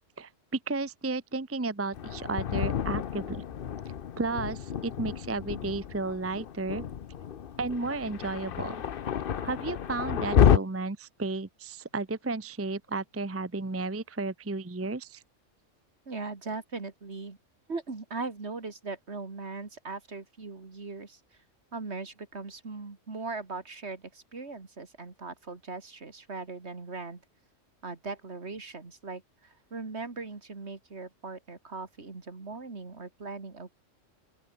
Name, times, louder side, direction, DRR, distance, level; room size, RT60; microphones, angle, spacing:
voice 1, 0.7-3.4 4.2-6.9 7.6-8.8 9.4-15.2, right 3 dB, 15° right, 0.6 m, -33 dB
Thunder, 1.9-10.6, left 8 dB, 50° left, 0.9 m, -29 dB
voice 2, 16.1-17.4 17.7-21.2 21.7-27.2 27.8-33.7, right 3 dB, 60° right, 2.8 m, -39 dB
open air
omnidirectional pair, 1.3 m